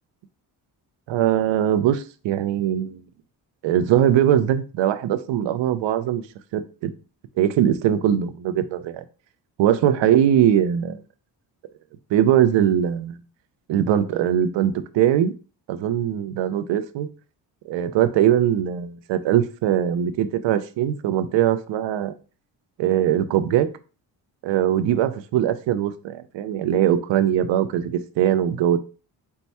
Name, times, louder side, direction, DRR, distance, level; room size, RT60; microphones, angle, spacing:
voice 1, 1.1-3.0 3.6-6.2 6.5-6.9 7.4-9.0 9.6-11.0 12.1-13.2 13.7-15.3 15.7-17.1 17.7-22.1 22.8-23.7 24.4-28.8, right 10 dB, 90° right, 12 dB, 0.5 m, -21 dB
4.5 x 2.2 x 4.1 m, 0.35 s
cardioid pair, 95°, 43 cm